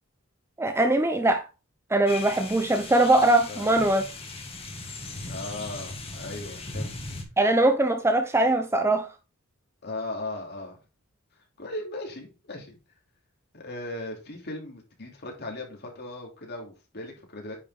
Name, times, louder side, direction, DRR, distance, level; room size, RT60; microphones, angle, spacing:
voice 1, 0.6-1.4 1.9-4.0 7.4-9.1, right 2 dB, 10° right, 0.6 m, -21 dB
sound 1, 2.1-7.2, left 2 dB, 25° left, 1.9 m, -38 dB
voice 2, 5.3-6.9 9.8-10.8 11.6-12.8 13.5-17.6, left 2 dB, 50° left, 2.7 m, -37 dB
9.8 x 4.8 x 3.7 m
head